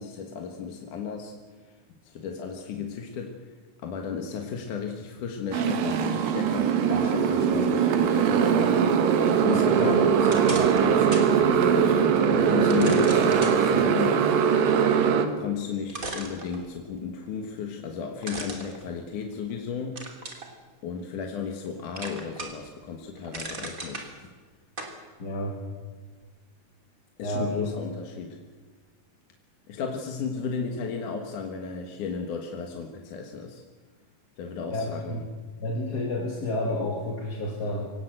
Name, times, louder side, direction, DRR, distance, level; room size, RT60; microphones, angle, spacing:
voice 1, 0.0-1.3 1.6-1.8 2.0-3.5 3.8-8.7 9.4-14.2 15.4-20.0 20.8-24.3 27.2-28.4 29.7-33.6 34.4-35.3, left 6 dB, 65° left, 3 dB, 3.0 m, -34 dB
Motorcycle, 5.5-15.3, right 7 dB, 80° right, 3.2 m, -21 dB
sound 1, 10.2-11.3 11.8-11.9 12.7-13.6 15.4-15.5 15.9-17.0 18.2-19.5 20.0-20.5 21.0-21.7 22.0-22.7 23.0-24.1 24.8-25.0, right 2 dB, 25° right, 3.1 m, -36 dB
voice 2, 25.2-25.6 27.2-27.7 34.7-35.3 35.6-37.9, left 1 dB, 35° left, 1 dB, 2.3 m, -30 dB
24.0 x 18.5 x 7.8 m, 1.4 s
omnidirectional pair, 3.9 m